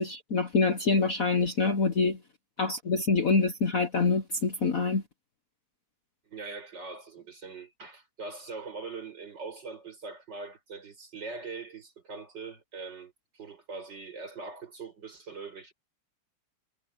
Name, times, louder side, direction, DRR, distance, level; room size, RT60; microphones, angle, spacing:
voice 1, 0.0-2.2 2.6-5.0, left 4 dB, 45° left, 1.3 m, -26 dB
voice 2, 6.3-15.7, right 4 dB, 50° right, 6.5 m, -42 dB
omnidirectional pair, 2.4 m